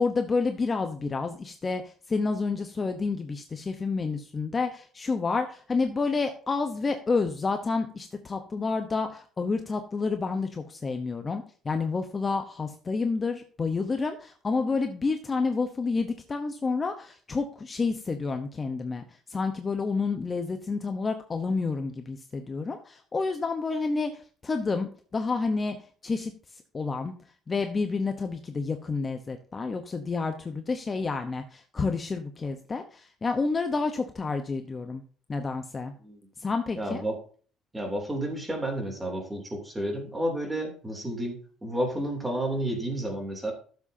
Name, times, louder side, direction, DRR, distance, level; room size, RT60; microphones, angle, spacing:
voice 1, 0.0-19.0 19.3-25.8 26.0-26.3 26.7-27.1 27.5-35.0 35.3-35.9 36.4-37.0, left 4 dB, 25° left, 6 dB, 0.9 m, -29 dB
voice 2, 36.8-37.2 37.7-43.5, right 1 dB, 10° right, 2 dB, 2.9 m, -31 dB
14.0 x 7.5 x 2.7 m, 0.43 s
cardioid pair, 130°, 0 cm